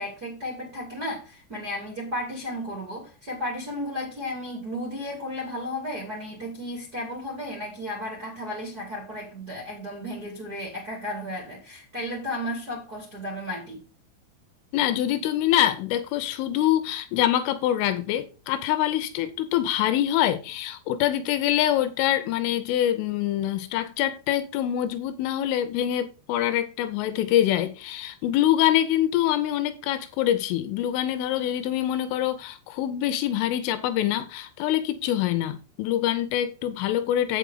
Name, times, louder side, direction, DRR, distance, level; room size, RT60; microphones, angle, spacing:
voice 1, 0.0-13.8, left 1 dB, 45° right, 1.2 m, -34 dB
voice 2, 14.7-37.4, left 12 dB, 85° left, 3.3 m, -25 dB
8.3 x 8.2 x 3.9 m
omnidirectional pair, 5.6 m